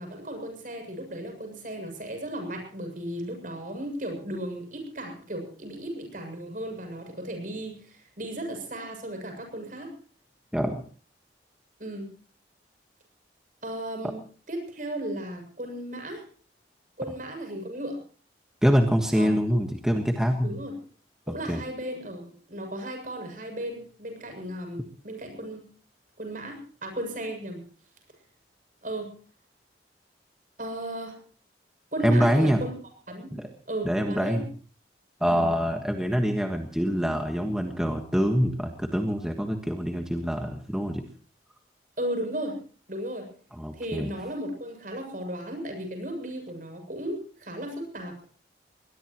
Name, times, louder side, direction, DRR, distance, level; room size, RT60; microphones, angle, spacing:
voice 1, 0.0-9.9 11.8-12.1 13.6-16.2 17.0-18.0 19.2-19.6 20.4-20.8 21.3-25.7 26.2-27.6 28.8-29.1 30.6-31.2 31.9-32.8 33.1-33.4 33.7-34.5 35.3-35.5 42.0-42.6 42.9-43.3 43.7-48.2, right 1 dB, 50° right, 3 dB, 7.5 m, -35 dB
voice 2, 18.6-20.6 21.3-21.6 32.0-32.6 33.3-33.5 33.8-34.4 35.2-41.0 43.6-44.1, equal, 5° right, 3 dB, 1.5 m, -25 dB
22.5 x 20.5 x 3.1 m, 0.42 s
head